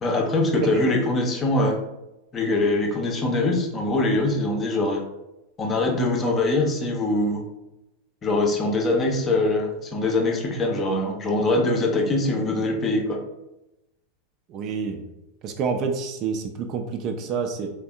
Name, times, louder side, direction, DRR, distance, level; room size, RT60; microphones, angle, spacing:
voice 1, 0.0-1.8 2.3-5.0 5.6-7.4 8.2-13.2, left 2 dB, 25° left, 2 dB, 0.6 m, -23 dB
voice 2, 14.5-15.0 15.4-17.7, right 5 dB, 35° right, 5 dB, 0.4 m, -28 dB
3.4 x 3.4 x 2.3 m, 0.93 s
figure-of-eight pair, 90°, 0 cm